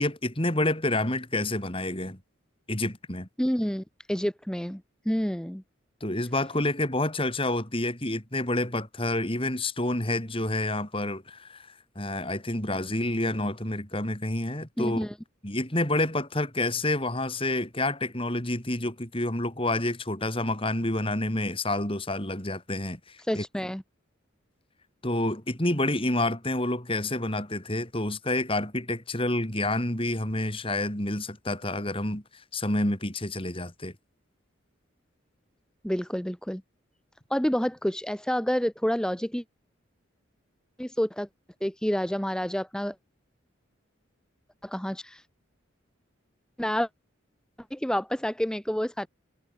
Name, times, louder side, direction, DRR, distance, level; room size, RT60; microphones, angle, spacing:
voice 1, 0.0-2.2 2.7-3.3 6.0-11.7 12.0-15.1 15.4-23.4 25.0-32.2 32.5-33.9, left 1 dB, 25° left, 4.2 m, -28 dB
voice 2, 3.4-4.8 5.1-5.6 14.8-15.1 23.2-23.8 35.8-36.6 37.3-39.4 40.8-41.3 41.6-42.9 44.6-45.2 46.6-46.9 47.7-49.1, equal, 5° left, 0.7 m, -28 dB
head